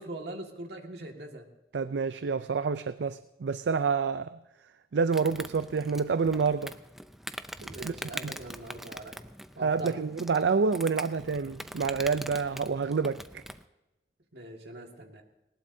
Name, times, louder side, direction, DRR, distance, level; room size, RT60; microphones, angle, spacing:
voice 1, 0.0-1.5 7.7-9.2 9.6-9.9 14.3-15.2, right 2 dB, 70° right, 3 dB, 1.8 m, -42 dB
voice 2, 1.7-4.4 4.9-6.7 7.6-7.9 8.2-8.3 9.6-13.2, right 5 dB, 85° right, 12 dB, 0.4 m, -28 dB
Insect, 5.1-13.6, equal, ahead, 0.4 m, -43 dB
19.5 x 18.0 x 2.7 m, 0.97 s
head